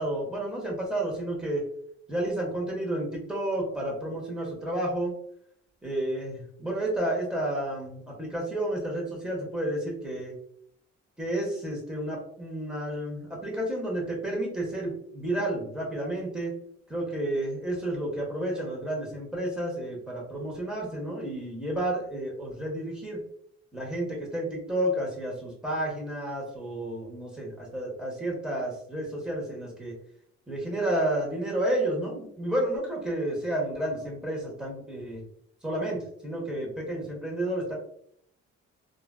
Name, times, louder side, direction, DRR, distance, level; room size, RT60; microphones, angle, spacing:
voice 1, 0.0-1.6 2.1-5.1 5.8-10.4 11.2-16.5 16.9-23.2 23.7-29.9 30.5-35.2 35.6-37.8, right 1 dB, 5° right, -3 dB, 1.3 m, -31 dB
3.0 x 2.5 x 2.3 m, 0.66 s
cardioid pair, 90°, 30 cm